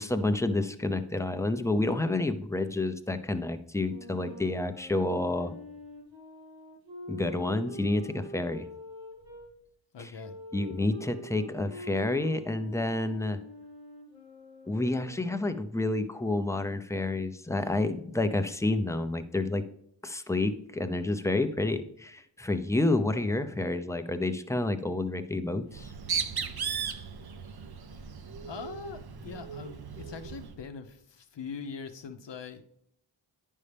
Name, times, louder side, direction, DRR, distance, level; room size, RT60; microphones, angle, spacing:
voice 1, 0.0-5.5 7.1-8.7 10.0-10.1 10.5-13.4 14.7-19.6 20.0-25.9, left 2 dB, 5° left, 9 dB, 0.6 m, -29 dB
sound 1, 3.8-9.5 10.2-15.7, left 1 dB, 80° right, 2.5 m, -45 dB
voice 2, 9.9-10.4 28.4-32.6, left 6 dB, 65° left, 7 dB, 0.8 m, -42 dB
Bird, 25.7-30.5, right 6 dB, 55° right, 0.7 m, -36 dB
9.7 x 5.5 x 3.4 m, 0.70 s
cardioid pair, 45°, 46 cm